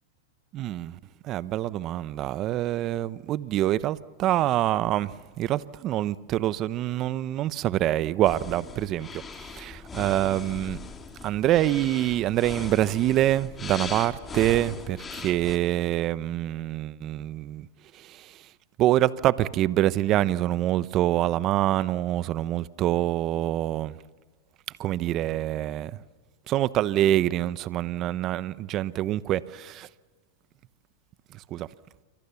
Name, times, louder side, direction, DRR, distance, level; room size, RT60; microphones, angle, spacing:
voice 1, 0.5-10.8 11.2-17.7 17.9-18.4 18.8-24.0 24.8-26.0 26.5-29.9 31.3-31.7, right 13 dB, 40° right, 0.9 m, -26 dB
sound 1, 8.2-15.6, left 5 dB, 20° left, 2.6 m, -40 dB
28.5 x 24.5 x 7.1 m
hypercardioid pair, 125°, 0 cm